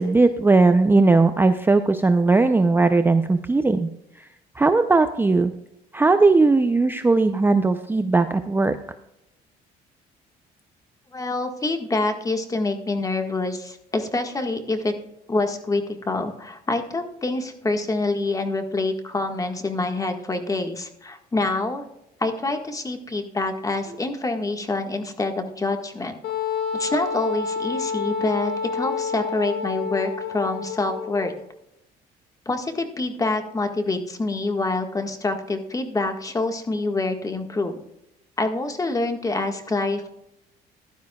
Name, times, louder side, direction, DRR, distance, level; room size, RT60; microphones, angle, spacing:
voice 1, 0.0-3.9 4.6-5.5 5.9-8.8, right 3 dB, 10° right, 9 dB, 0.5 m, -18 dB
voice 2, 11.1-14.9 15.3-21.8 22.2-26.2 26.7-31.3 32.4-37.8 38.4-40.1, left 2 dB, 20° left, 5 dB, 1.6 m, -26 dB
Wind instrument woodwind instrument, 26.2-31.4, left 5 dB, 65° left, 1.5 m, -29 dB
15.5 x 12.0 x 2.3 m, 0.83 s
cardioid pair, 110°, 17 cm